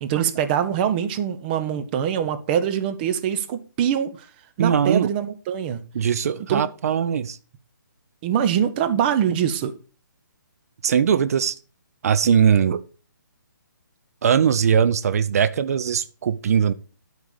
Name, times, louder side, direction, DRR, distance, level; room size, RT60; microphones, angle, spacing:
voice 1, 0.0-4.3 4.6-5.8 6.5-6.6 8.2-9.7, right 9 dB, 30° right, 1.2 m, -23 dB
voice 2, 4.6-5.1 5.9-7.4 10.8-11.6 12.0-12.8 14.2-16.7, right 7 dB, 50° right, 0.8 m, -20 dB
12.5 x 4.7 x 6.9 m
figure-of-eight pair, 145°, 11 cm